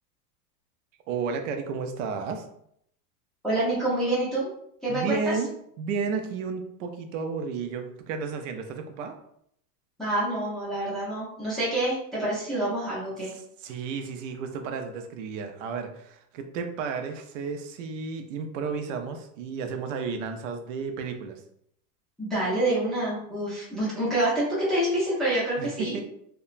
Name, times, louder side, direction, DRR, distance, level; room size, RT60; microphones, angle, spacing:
voice 1, 1.1-2.4 4.9-5.5 5.8-9.1 13.2-21.4 25.6-26.0, right 5 dB, 55° right, 6 dB, 0.5 m, -32 dB
voice 2, 3.4-4.5 4.8-5.2 10.0-13.3 22.2-25.9, right 1 dB, ahead, -10 dB, 0.5 m, -27 dB
2.8 x 2.2 x 2.4 m, 0.70 s
supercardioid pair, 150°, 48 cm